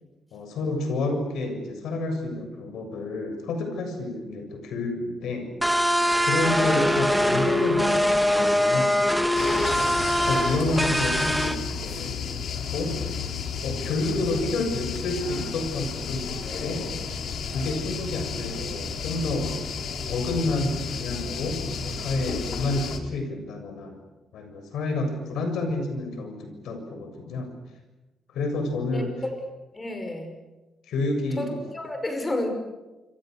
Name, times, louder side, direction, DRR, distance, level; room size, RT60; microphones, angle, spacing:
voice 1, 0.3-5.5 6.2-9.0 9.8-11.6 11.8-12.3 12.6-13.0 13.6-16.9 17.5-19.5 20.1-24.0 24.3-27.5 28.3-29.1 30.9-31.5, left 2 dB, 85° left, 5 dB, 7.3 m, -29 dB
sound 1, 5.6-11.5, equal, ahead, 1.7 m, -22 dB
sound 2, 9.3-23.0, left 5 dB, 60° left, 3.1 m, -32 dB
voice 2, 28.9-29.4 29.7-30.3 31.4-32.5, left 1 dB, 15° left, 6 dB, 5.5 m, -31 dB
27.5 x 26.0 x 6.7 m, 1.1 s
cardioid pair, 155°, 0 cm